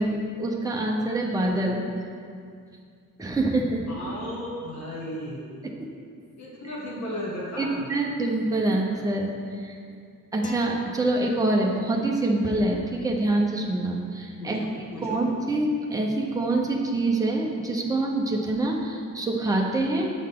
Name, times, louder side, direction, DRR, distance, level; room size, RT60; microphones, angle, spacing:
voice 1, 0.0-1.9 3.2-3.8 5.6-5.7 7.6-9.8 10.3-14.6 15.0-20.1, right 2 dB, 10° right, -1 dB, 0.7 m, -25 dB
voice 2, 3.9-5.5 6.4-7.8 14.4-15.2, equal, 55° left, -6 dB, 1.8 m, -35 dB
sound 1, 10.4-11.9, left 2 dB, 25° left, 0.5 m, -39 dB
7.6 x 6.2 x 3.7 m, 2.3 s
wide cardioid pair, 170°, 32 cm